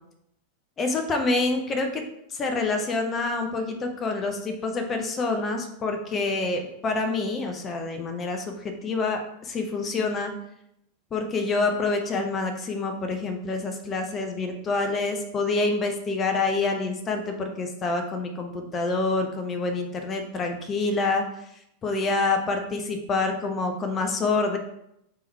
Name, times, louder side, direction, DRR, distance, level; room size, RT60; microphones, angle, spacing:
voice 1, 0.8-2.0 2.3-10.3 11.1-21.2 21.8-24.6, left 3 dB, 25° left, 5 dB, 0.7 m, -27 dB
3.6 x 3.1 x 4.6 m, 0.79 s
figure-of-eight pair, 90°, 0 cm